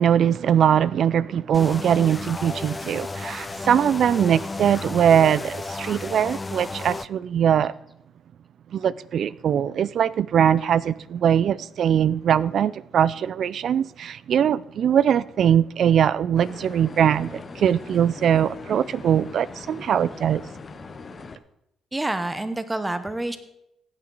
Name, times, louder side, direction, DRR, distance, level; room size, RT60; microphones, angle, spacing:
voice 1, 0.0-7.7 8.7-20.4, right 9 dB, 65° right, 0.4 m, -21 dB
sound 1, 1.5-7.1, left 3 dB, 20° left, 0.3 m, -33 dB
sound 2, 16.4-21.4, left 4 dB, 40° left, 0.7 m, -41 dB
voice 2, 21.9-23.4, right 2 dB, 15° right, 1.0 m, -27 dB
15.5 x 8.7 x 4.0 m
cardioid pair, 90°, 0 cm